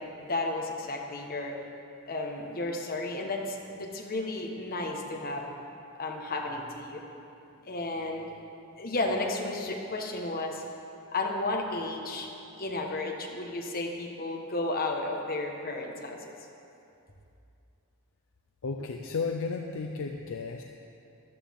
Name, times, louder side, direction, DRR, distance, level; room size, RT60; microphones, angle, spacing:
voice 1, 0.0-1.6 2.1-5.5 6.0-7.0 7.6-8.3 8.8-10.6 11.1-12.3 12.6-16.3, left 2 dB, 45° left, 1 dB, 1.3 m, -33 dB
voice 2, 18.6-20.6, left 4 dB, 65° left, 3 dB, 0.6 m, -33 dB
14.0 x 12.5 x 3.6 m, 2.7 s
head